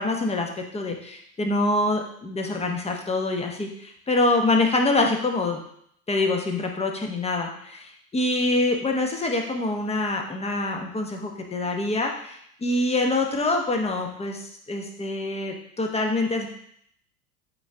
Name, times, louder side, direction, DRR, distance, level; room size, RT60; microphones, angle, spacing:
voice 1, 0.0-5.6 6.1-16.5, left 2 dB, 15° left, 2 dB, 1.0 m, -25 dB
8.4 x 3.8 x 3.5 m, 0.69 s
hypercardioid pair, 80°, 45 cm